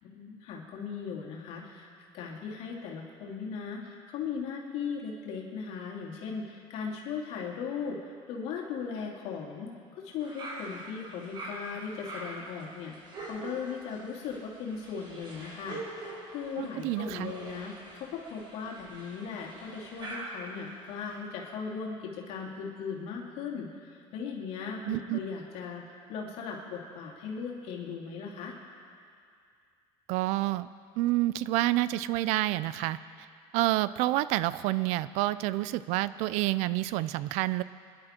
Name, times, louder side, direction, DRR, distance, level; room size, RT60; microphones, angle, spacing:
voice 1, 0.0-1.9 2.1-9.7 10.0-28.5, left 6 dB, 70° left, -2 dB, 2.7 m, -38 dB
sound 1, 10.2-21.2, right 2 dB, 40° right, 4.6 m, -44 dB
voice 2, 16.6-17.3 24.9-25.2 30.1-30.7 31.0-33.0 33.5-37.6, right 16 dB, 80° right, 16 dB, 0.5 m, -28 dB
25.5 x 11.5 x 4.4 m, 2.3 s
cardioid pair, 125°, 12 cm